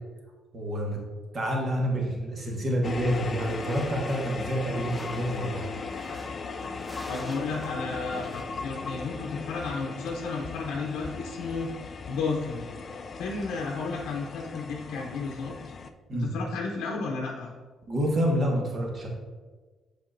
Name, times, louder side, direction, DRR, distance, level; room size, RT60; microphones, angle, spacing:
voice 1, 0.5-1.0 1.3-5.7 16.1-16.3 17.9-19.1, equal, 45° right, -1 dB, 1.5 m, -28 dB
sound 1, 2.8-15.9, left 4 dB, 45° left, 0.4 m, -38 dB
sound 2, 3.1-8.4, equal, ahead, 0.9 m, -47 dB
voice 2, 7.1-12.7 13.2-15.5 16.1-17.5, left 4 dB, 90° left, -1 dB, 0.6 m, -33 dB
7.4 x 4.9 x 2.6 m, 1.4 s
cardioid pair, 90°, 0 cm